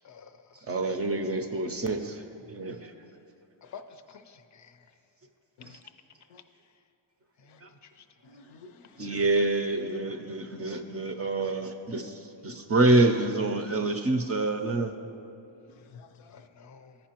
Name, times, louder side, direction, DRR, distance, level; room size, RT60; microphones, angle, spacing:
voice 1, 0.7-2.2 2.5-2.9 5.7-5.8 7.6-7.7 9.0-14.9, right 2 dB, 30° right, 6 dB, 0.4 m, -27 dB
voice 2, 3.7-4.8 7.4-8.0 16.3-17.0, left 6 dB, 40° left, 8 dB, 0.4 m, -49 dB
voice 3, 8.2-9.1 10.7-10.8 12.0-12.1 12.5-12.7 15.8-16.5, left 5 dB, 85° left, 8 dB, 0.6 m, -51 dB
15.5 x 5.3 x 2.9 m, 2.8 s
wide cardioid pair, 140°, 48 cm